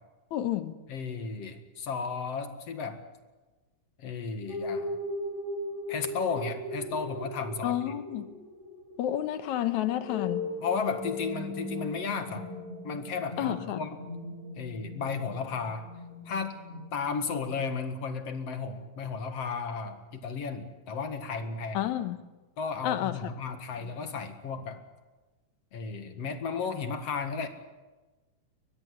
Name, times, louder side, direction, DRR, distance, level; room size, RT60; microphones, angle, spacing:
voice 1, 0.3-0.8 7.6-8.3 9.0-10.4 13.4-13.9 21.7-22.2 22.8-23.3, left 12 dB, 80° left, 2.5 m, -30 dB
voice 2, 0.9-3.0 4.0-5.0 5.9-7.9 10.6-12.5 12.8-13.9 14.6-15.9 16.3-16.6 16.9-21.9 22.6-24.8 25.7-27.5, left 5 dB, 60° left, 2.8 m, -34 dB
sound 1, 4.5-17.6, left 1 dB, 65° right, 6.4 m, -38 dB
23.5 x 20.0 x 8.0 m
omnidirectional pair, 3.3 m